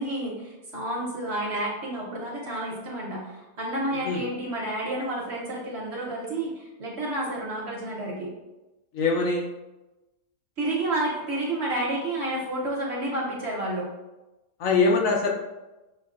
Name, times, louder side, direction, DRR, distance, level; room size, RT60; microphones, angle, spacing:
voice 1, 0.0-8.3 10.6-13.9, right 1 dB, 50° right, -4 dB, 1.0 m, -30 dB
voice 2, 8.9-9.5 14.6-15.3, left 3 dB, 70° left, -1 dB, 0.9 m, -22 dB
6.4 x 2.2 x 2.4 m, 1.1 s
omnidirectional pair, 1.6 m